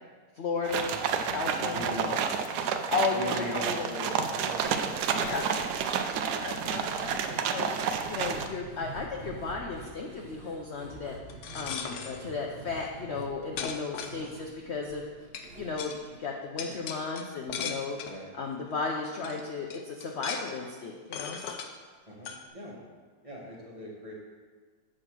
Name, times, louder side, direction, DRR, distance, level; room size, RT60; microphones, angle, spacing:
voice 1, 0.3-1.0 1.3-2.2 2.9-3.9 5.1-5.5 6.2-7.7 8.1-11.1 11.5-15.1 15.6-18.0 18.3-21.4, left 4 dB, 60° left, 1 dB, 0.7 m, -34 dB
sound 1, 0.7-8.5, right 7 dB, 75° right, 1.1 m, -30 dB
voice 2, 1.7-2.1 3.1-5.7 6.1-6.4 18.0-18.3 22.1-22.8 23.2-24.1, left 1 dB, 20° right, -4 dB, 1.1 m, -40 dB
sound 2, 4.6-16.9 17.2-17.3 17.7-17.8, right 3 dB, 45° right, 0.9 m, -48 dB
sound 3, 11.3-12.2 13.1-13.2 13.6-14.6 15.3-15.5 15.8-16.0 16.6-18.2 18.8-18.9 19.2-19.4 19.7-20.6 21.1-21.7 22.2-22.4, left 7 dB, 85° left, 1.3 m, -37 dB
7.6 x 5.0 x 6.0 m, 1.5 s
omnidirectional pair, 1.8 m